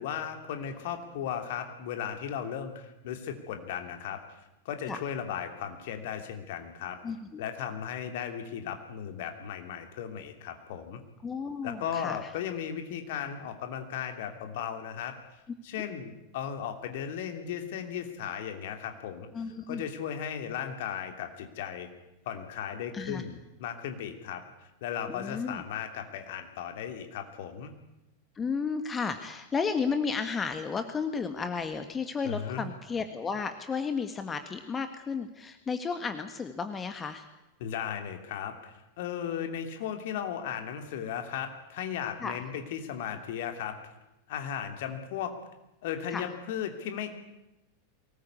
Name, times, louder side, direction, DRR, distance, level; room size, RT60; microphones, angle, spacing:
voice 1, 0.0-4.2 4.6-7.0 7.4-11.0 11.6-15.2 15.6-19.3 19.7-21.9 22.2-24.4 24.8-27.7 32.2-32.7 37.6-43.7 44.3-45.3 45.8-47.1, left 8 dB, 50° left, 6 dB, 3.0 m, -36 dB
voice 2, 7.0-7.5 11.2-12.3 19.3-19.8 22.9-23.2 25.1-25.6 28.3-37.3 42.2-42.5 46.1-46.3, left 5 dB, 20° left, 8 dB, 1.7 m, -33 dB
23.0 x 19.0 x 8.4 m, 0.97 s
figure-of-eight pair, 90°, 0 cm